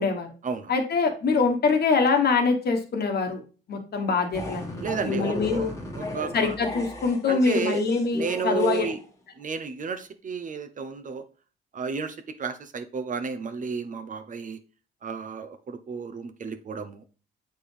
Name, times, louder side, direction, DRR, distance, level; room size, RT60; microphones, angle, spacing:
voice 1, 0.7-3.4 3.7-5.7 6.3-8.9, left 4 dB, 55° left, 4 dB, 1.3 m, -24 dB
sound 1, 4.3-9.0, left 1 dB, 15° left, 1.4 m, -36 dB
voice 2, 4.8-6.6 7.3-7.8 8.1-9.0 9.4-11.2 11.7-14.6 15.0-17.0, right 5 dB, 40° right, 8 dB, 0.7 m, -32 dB
7.3 x 4.4 x 3.3 m, 0.37 s
cardioid pair, 90°, 20 cm